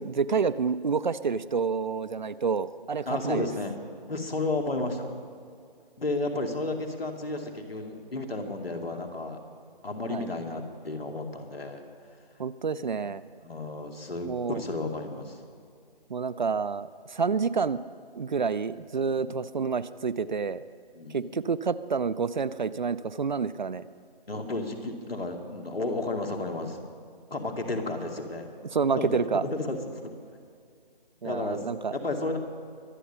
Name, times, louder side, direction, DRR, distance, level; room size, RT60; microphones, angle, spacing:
voice 1, 0.0-3.5 10.1-10.3 12.4-13.2 14.2-14.6 16.1-17.8 18.2-20.6 21.1-23.9 28.7-29.4 31.2-32.0, right 5 dB, 50° right, 14 dB, 0.5 m, -28 dB
voice 2, 3.1-3.7 4.1-5.1 6.0-9.4 9.8-11.8 13.0-13.1 13.4-15.4 19.2-19.3 20.9-21.3 24.3-26.8 27.3-28.5 28.9-30.1 31.2-31.6 31.9-32.4, left 2 dB, 80° left, 3 dB, 2.5 m, -32 dB
24.0 x 9.2 x 5.6 m, 2.3 s
figure-of-eight pair, 155°, 29 cm